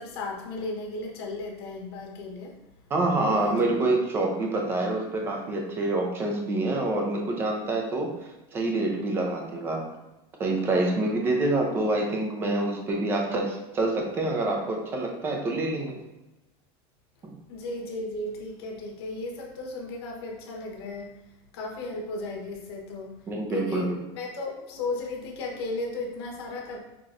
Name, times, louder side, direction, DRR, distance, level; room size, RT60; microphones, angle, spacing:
voice 1, 0.0-2.6 3.1-3.7 17.5-21.2 21.5-26.8, left 2 dB, 80° left, 0 dB, 1.1 m, -35 dB
voice 2, 2.9-9.8 10.4-16.0 23.3-24.0, right 2 dB, 15° right, 1 dB, 0.6 m, -27 dB
5.9 x 3.0 x 2.5 m, 0.98 s
supercardioid pair, 180°, 13 cm